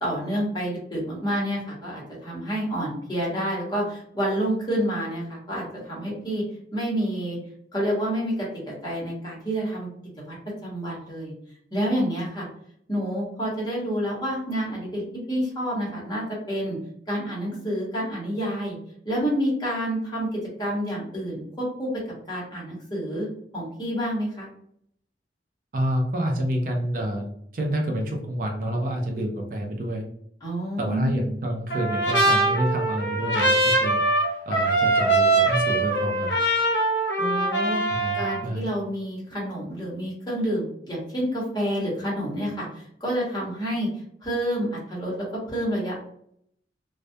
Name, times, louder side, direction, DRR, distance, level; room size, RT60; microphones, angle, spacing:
voice 1, 0.0-6.4 6.7-7.4 7.7-9.9 10.2-10.3 10.6-11.3 11.7-12.5 12.9-15.0 15.3-16.8 17.1-18.8 19.0-23.3 23.5-24.5 30.4-31.2 37.2-37.8 38.1-43.9 44.2-46.0, equal, 25° left, -5 dB, 0.9 m, -28 dB
voice 2, 25.7-27.3 27.5-30.0 30.8-34.0 34.5-36.4 37.9-38.7, right 1 dB, 50° right, 1 dB, 0.4 m, -28 dB
Trumpet, 31.7-38.4, right 2 dB, 75° left, 0.7 m, -22 dB
2.2 x 2.1 x 2.6 m, 0.69 s
head